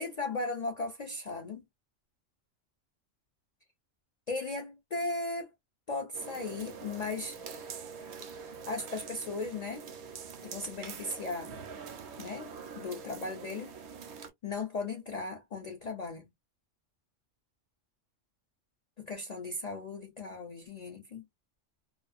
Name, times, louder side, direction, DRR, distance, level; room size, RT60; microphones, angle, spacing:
voice 1, 0.0-1.6 4.3-5.5 5.9-7.4 8.7-9.8 10.4-11.5 12.2-12.5 12.7-13.7 14.4-16.3 19.0-21.2, left 3 dB, 55° left, 0.4 m, -37 dB
sound 1, 6.1-14.3, right 6 dB, 65° right, 0.8 m, -45 dB
2.3 x 2.3 x 2.4 m
omnidirectional pair, 1.3 m